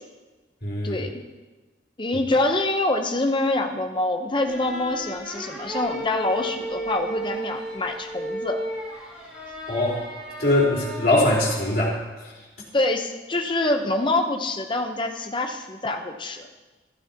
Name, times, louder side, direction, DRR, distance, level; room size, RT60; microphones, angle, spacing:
voice 1, 0.6-1.0 9.7-10.0 10.4-12.0, left 1 dB, 55° left, -5 dB, 4.1 m, -21 dB
voice 2, 2.0-8.6 12.7-16.5, left 2 dB, 25° left, 4 dB, 0.8 m, -25 dB
sound 1, 4.4-11.9, right 1 dB, 5° right, 4.1 m, -34 dB
14.5 x 12.5 x 2.9 m, 1.2 s
head